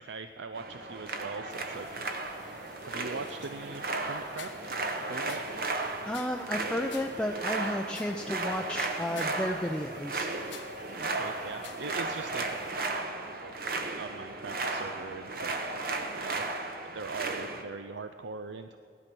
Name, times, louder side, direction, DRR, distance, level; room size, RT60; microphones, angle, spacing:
voice 1, 0.0-2.0 2.8-4.5 5.0-5.4 11.0-12.7 14.0-15.5 16.1-16.4 16.8-18.8, right 4 dB, 85° right, 8 dB, 0.5 m, -41 dB
sound 1, 0.5-17.6, right 3 dB, 50° right, 1.1 m, -35 dB
sound 2, 1.5-12.7, left 7 dB, 85° left, 1.4 m, -52 dB
voice 2, 6.0-10.4, left 1 dB, 5° left, 2 dB, 0.5 m, -33 dB
17.0 x 12.0 x 6.1 m, 2.2 s
head